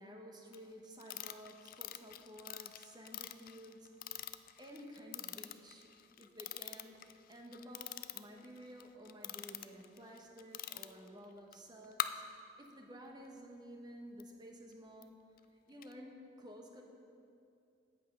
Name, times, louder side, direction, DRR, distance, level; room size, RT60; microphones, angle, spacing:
voice 1, 0.0-4.2 4.6-5.9 6.2-15.2 15.7-16.8, equal, 25° right, 1 dB, 1.1 m, -53 dB
sound 1, 0.5-0.6 1.0-11.1 11.5-11.6 11.8-12.1 14.2-14.3 15.0-15.1 15.4-15.5 15.8-15.9, left 12 dB, 50° left, 0.3 m, -44 dB
8.4 x 8.2 x 5.4 m, 2.5 s
head